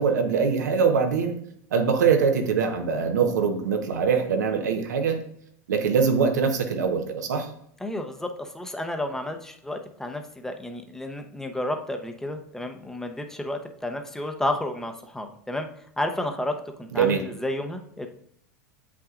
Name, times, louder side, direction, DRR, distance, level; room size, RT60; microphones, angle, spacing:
voice 1, 0.0-1.4 1.7-5.2 5.7-7.5 16.9-17.2, right 6 dB, 90° right, 5 dB, 1.0 m, -23 dB
voice 2, 7.8-15.7 16.0-18.1, left 1 dB, 5° left, 5 dB, 0.8 m, -31 dB
7.8 x 5.9 x 2.5 m, 0.70 s
hypercardioid pair, 105°, 9 cm